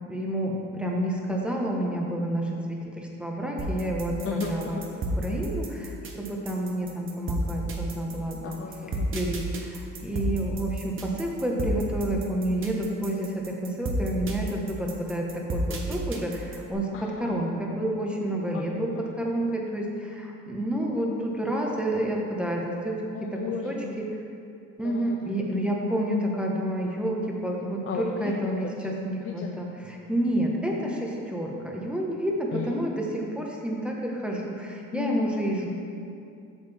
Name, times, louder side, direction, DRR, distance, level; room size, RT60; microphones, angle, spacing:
voice 1, 0.0-8.6 9.1-23.0 23.3-23.4 23.6-24.1 24.8-35.7, right 1 dB, 5° right, -2 dB, 1.2 m, -29 dB
sound 1, 3.6-16.7, right 1 dB, 45° right, 1.0 m, -31 dB
voice 2, 4.2-4.9 8.4-9.1 16.9-17.1 18.5-18.6 19.0-19.1 23.1-24.0 24.8-25.3 27.9-28.5 28.8-28.9 29.2-29.6 32.5-32.7 34.9-35.7, left 5 dB, 45° left, 2 dB, 0.6 m, -34 dB
8.2 x 6.5 x 3.5 m, 2.5 s
cardioid pair, 90°, 30 cm